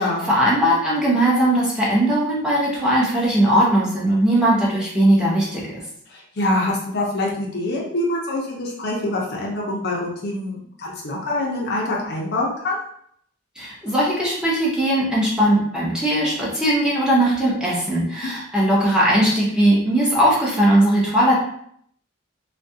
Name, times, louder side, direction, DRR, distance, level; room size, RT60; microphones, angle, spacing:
voice 1, 0.0-5.8 13.6-21.3, right 1 dB, 5° right, -6 dB, 0.7 m, -19 dB
voice 2, 6.1-12.8, left 2 dB, 55° left, -2 dB, 0.6 m, -25 dB
2.3 x 2.2 x 2.6 m, 0.65 s
head